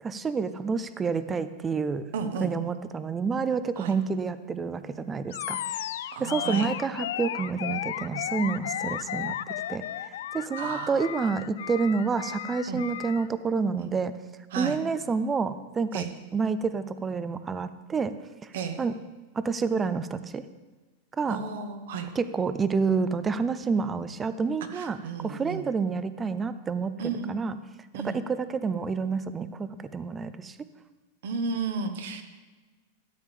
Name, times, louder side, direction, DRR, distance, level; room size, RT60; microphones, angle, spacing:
voice 1, 0.0-2.1 2.4-5.6 6.2-9.3 9.7-9.8 10.3-14.1 14.6-16.1 16.3-18.1 18.8-19.0 19.4-20.4 21.2-21.4 22.1-25.0 25.2-27.6 27.9-30.6, right 5 dB, 15° right, 13 dB, 0.4 m, -28 dB
voice 2, 2.1-2.5 3.8-3.9 6.1-6.7 10.6-11.1 12.7-12.8 13.8-13.9 14.5-14.8 15.9-16.1 18.5-18.8 21.3-22.1 24.7-25.6 27.0-27.3 27.9-28.2 31.2-32.2, right 5 dB, 70° right, 7 dB, 1.2 m, -33 dB
Animal, 5.3-13.3, left 11 dB, 75° left, 0.3 m, -34 dB
13.0 x 8.4 x 3.6 m, 1.3 s
supercardioid pair, 160°, 0 cm